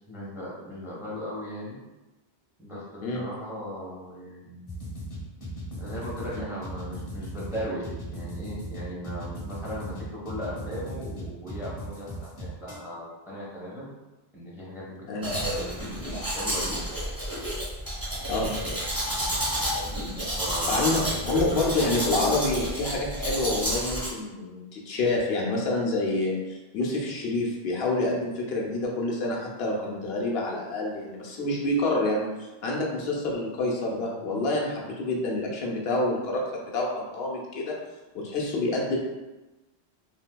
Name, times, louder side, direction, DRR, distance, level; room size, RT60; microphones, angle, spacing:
voice 1, 0.1-1.8 2.6-4.8 5.8-13.9 14.3-15.9 16.1-16.8 20.4-21.1 21.5-21.8, equal, 5° right, -6 dB, 0.6 m, -37 dB
sound 1, 4.7-12.8, left 2 dB, 30° left, 0.8 m, -38 dB
Domestic sounds home sounds, 15.2-24.1, equal, 20° right, 1.0 m, -30 dB
voice 2, 18.2-18.5 20.7-37.8 38.1-39.0, left 2 dB, 75° left, -2 dB, 0.8 m, -28 dB
3.4 x 2.7 x 2.2 m, 1.1 s
omnidirectional pair, 1.0 m